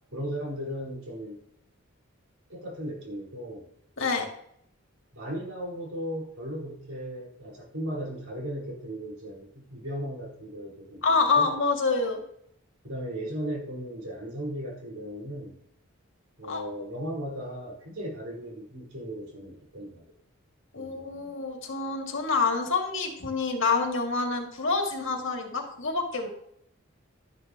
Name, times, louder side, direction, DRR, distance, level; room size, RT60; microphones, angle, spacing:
voice 1, 0.1-1.4 2.5-3.7 5.1-11.0 11.3-11.5 12.8-15.6 16.4-20.0 20.7-21.3, equal, 85° right, -3 dB, 4.9 m, -36 dB
voice 2, 11.0-12.2 16.5-16.6 20.7-26.3, left 4 dB, 65° left, 2 dB, 2.4 m, -27 dB
12.5 x 11.5 x 3.0 m, 0.71 s
head